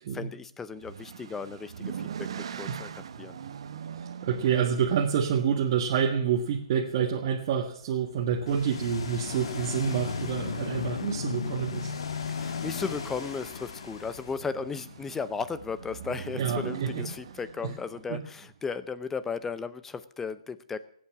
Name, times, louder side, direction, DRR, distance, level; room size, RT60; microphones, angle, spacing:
voice 1, 0.1-1.9 2.3-2.9 3.2-3.4 12.3-20.8, left 5 dB, 10° left, 14 dB, 0.7 m, -35 dB
sound 1, 0.7-6.9 7.9-8.3 8.7-8.8 9.1-9.2 14.2-18.6, right 8 dB, 60° right, 1.1 m, -41 dB
voice 2, 4.0-11.9 16.4-17.1 17.6-17.7 18.1-18.2, right 7 dB, 45° right, 0 dB, 1.6 m, -28 dB
sound 2, 7.8-16.5 17.1-17.2, left 5 dB, 80° left, 0.9 m, -37 dB
Ocean, 8.5-14.3, left 5 dB, 65° left, 2.9 m, -42 dB
17.5 x 8.6 x 7.1 m, 0.62 s
hypercardioid pair, 145°, 3 cm